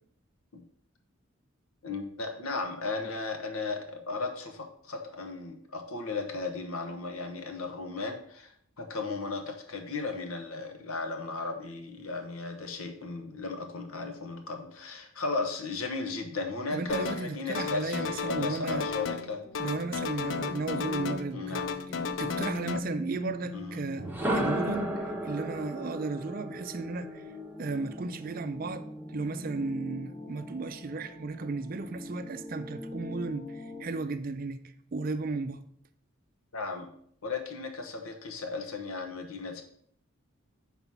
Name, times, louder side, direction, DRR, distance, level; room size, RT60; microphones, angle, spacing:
voice 1, 1.8-8.5 8.8-19.4 21.3-21.7 23.5-23.8 36.5-36.9 37.2-39.6, left 3 dB, 90° left, 1.1 m, -35 dB
voice 2, 16.7-18.9 19.6-21.6 22.2-27.2 27.6-34.6 34.9-35.6, right 3 dB, 40° right, 0.4 m, -34 dB
sound 1, 16.9-17.3 17.5-19.3 19.5-21.3 21.6-22.8, left 5 dB, 60° left, 0.4 m, -34 dB
sound 2, 18.9-33.8, left 2 dB, 15° left, 0.9 m, -42 dB
sound 3, 24.0-28.0, right 1 dB, 10° right, 0.8 m, -33 dB
5.6 x 3.9 x 5.9 m
head